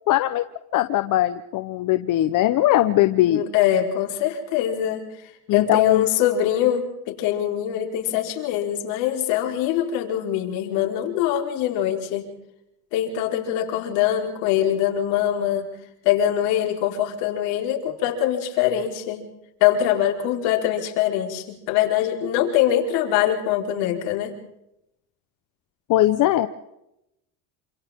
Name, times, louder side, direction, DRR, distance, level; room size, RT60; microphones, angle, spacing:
voice 1, 0.1-0.4 0.7-3.4 5.5-6.0 25.9-26.5, left 14 dB, 55° left, 10 dB, 1.1 m, -20 dB
voice 2, 3.3-5.1 5.5-12.3 12.9-15.7 16.0-19.2 19.6-24.3, left 11 dB, 75° left, 1 dB, 5.1 m, -23 dB
28.0 x 27.0 x 3.8 m, 0.84 s
supercardioid pair, 110°, 38 cm